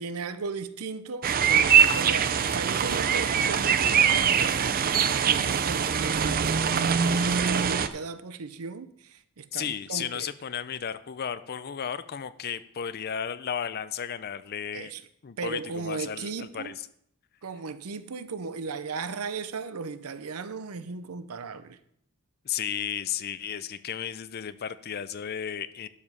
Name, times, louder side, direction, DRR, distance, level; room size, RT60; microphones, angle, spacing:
voice 1, 0.0-4.6 4.9-10.3 14.7-15.0 15.4-16.7 17.4-21.8, right 4 dB, 90° right, 0.7 m, -36 dB
sound 1, 1.2-7.9, right 7 dB, 40° right, 0.5 m, -23 dB
voice 2, 9.5-14.9 15.2-16.8 22.4-25.9, left 8 dB, 45° left, 0.5 m, -34 dB
12.0 x 5.0 x 5.5 m
head